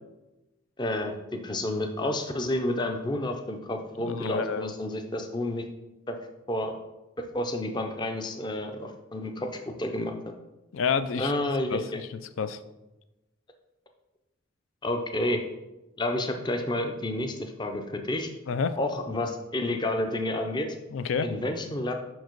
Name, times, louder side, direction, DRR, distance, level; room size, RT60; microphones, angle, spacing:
voice 1, 0.8-1.2 1.4-5.6 6.1-6.2 6.5-6.8 7.3-10.1 11.1-12.0 14.8-15.4 16.0-18.3 18.8-20.8 21.2-21.9, left 1 dB, 20° left, 5 dB, 0.5 m, -30 dB
voice 2, 4.0-4.7 10.7-11.3 11.7-12.1 12.4-12.6 18.5-18.8 20.9-21.3, left 6 dB, 75° left, 12 dB, 0.4 m, -29 dB
5.7 x 4.6 x 4.6 m, 1.0 s
head